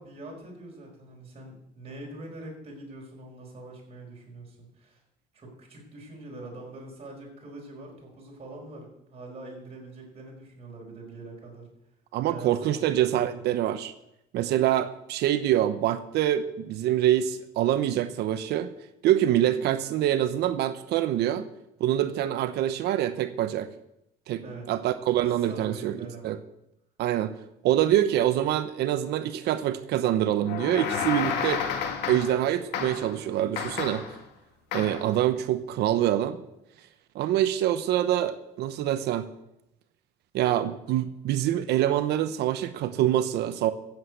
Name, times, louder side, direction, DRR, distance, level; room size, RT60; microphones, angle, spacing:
voice 1, 0.0-5.0 5.3-11.7 12.2-13.4 24.4-24.7 25.4-26.4, right 2 dB, 35° right, -1 dB, 5.1 m, -43 dB
voice 2, 12.1-13.9 14.3-18.7 19.0-21.5 21.8-23.7 24.3-26.0 26.2-26.4 27.0-27.3 27.6-31.6 32.1-34.0 34.7-36.4 37.1-39.3 40.3-43.7, right 12 dB, 80° right, 12 dB, 0.8 m, -25 dB
sound 1, 30.5-32.4 32.7-33.2 33.6-34.2 34.7-35.1, left 7 dB, 85° left, 2.1 m, -31 dB
14.5 x 8.2 x 8.1 m, 0.86 s
cardioid pair, 110°, 17 cm